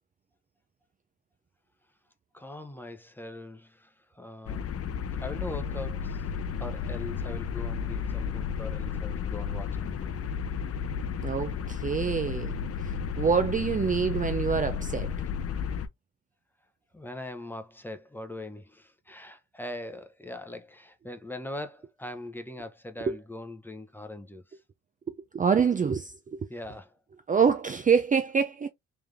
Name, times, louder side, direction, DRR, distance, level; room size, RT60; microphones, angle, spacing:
voice 1, 2.3-4.7 5.2-6.2 6.6-10.3 16.9-24.6 26.5-27.0, left 1 dB, 5° left, 0.9 m, -41 dB
sound 1, 4.5-15.9, left 7 dB, 50° left, 0.7 m, -33 dB
voice 2, 11.2-12.5 12.8-15.1 23.1-23.2 25.1-26.5 27.3-28.7, right 6 dB, 25° right, 0.5 m, -26 dB
3.4 x 3.4 x 3.4 m
cardioid pair, 90°, 30 cm